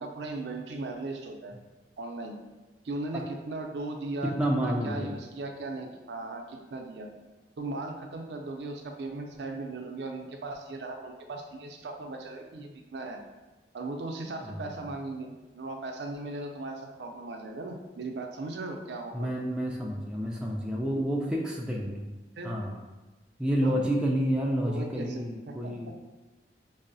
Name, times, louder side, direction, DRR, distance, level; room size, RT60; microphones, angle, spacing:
voice 1, 0.0-1.6 2.0-2.4 2.8-4.3 4.6-7.1 7.6-13.2 13.7-19.3 22.4-22.5 23.6-23.7 24.6-25.5, right 2 dB, 70° right, 3 dB, 0.4 m, -37 dB
voice 2, 4.2-5.1 14.4-14.9 19.1-22.1 22.4-22.8 23.4-25.9, equal, 5° right, -2 dB, 0.3 m, -29 dB
5.3 x 2.0 x 2.6 m, 1.2 s
head